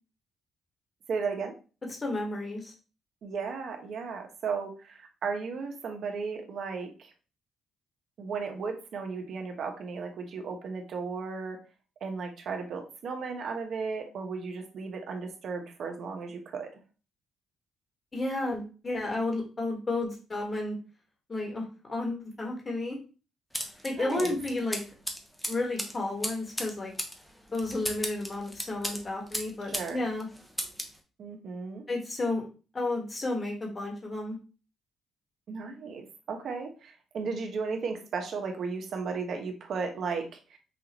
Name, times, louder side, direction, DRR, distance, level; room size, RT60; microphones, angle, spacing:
voice 1, 1.1-1.5 3.2-7.1 8.2-11.6 12.0-16.8 24.0-24.3 29.7-30.0 31.2-31.8 35.5-40.6, right 5 dB, 65° right, 4 dB, 1.0 m, -35 dB
voice 2, 1.9-2.7 18.1-20.8 21.3-23.0 23.8-24.8 25.5-26.9 27.5-30.3 31.9-32.5 32.7-34.4, left 2 dB, 30° left, 0 dB, 1.6 m, -32 dB
sound 1, 23.5-29.9 30.2-31.0, equal, 5° left, 0.9 m, -36 dB
5.6 x 2.6 x 3.0 m, 0.35 s
cardioid pair, 90°, 0 cm